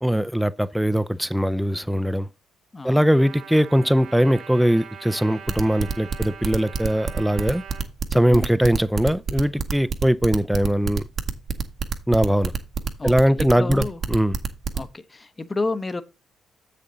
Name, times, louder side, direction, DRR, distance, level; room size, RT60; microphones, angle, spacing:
voice 1, 0.0-2.3 2.8-7.6 8.1-11.0 12.1-12.5 13.0-14.4, equal, ahead, 0.4 m, -21 dB
Trumpet, 3.2-7.9, right 7 dB, 85° right, 2.8 m, -42 dB
sound 1, 5.5-14.8, right 5 dB, 55° right, 1.0 m, -27 dB
voice 2, 8.3-8.6 13.0-14.0 14.8-16.0, left 3 dB, 25° left, 0.8 m, -31 dB
7.5 x 6.8 x 3.9 m
cardioid pair, 90°, 0 cm